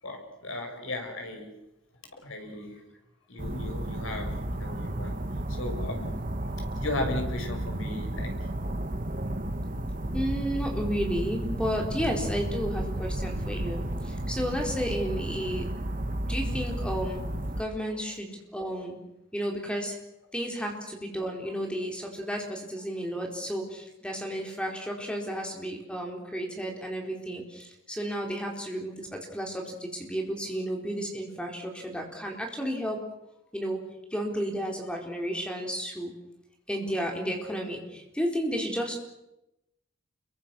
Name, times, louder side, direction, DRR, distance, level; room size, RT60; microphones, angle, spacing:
voice 1, 0.0-1.5 2.2-2.8 3.3-5.2 5.5-6.3 6.6-8.4, left 2 dB, 90° left, 4 dB, 5.7 m, -36 dB
sound 1, 3.4-17.6, right 1 dB, 40° right, 1.6 m, -32 dB
voice 2, 10.1-15.7 16.3-17.2 17.6-19.0 19.3-20.0 20.3-33.0 33.5-33.8 34.1-36.1 36.7-38.9, equal, 5° left, 1 dB, 4.5 m, -32 dB
29.5 x 23.0 x 6.3 m, 0.90 s
head